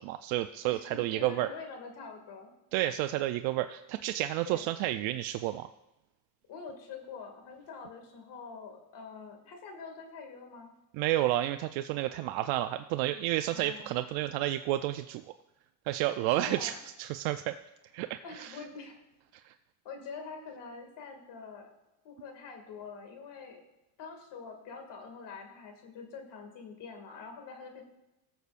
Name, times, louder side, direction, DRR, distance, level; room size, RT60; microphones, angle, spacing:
voice 1, 0.0-1.5 2.7-5.7 10.9-15.2 15.9-17.6 17.9-18.6 19.4-19.5, right 14 dB, 85° right, 8 dB, 0.5 m, -31 dB
voice 2, 0.6-2.5 4.4-4.6 6.5-10.7 13.5-14.0 16.3-16.8 18.2-19.0 19.8-21.7 22.0-23.6 24.0-27.8, left 5 dB, 65° left, 4 dB, 2.3 m, -45 dB
17.5 x 6.9 x 2.5 m, 0.99 s
cardioid pair, 120°, 45 cm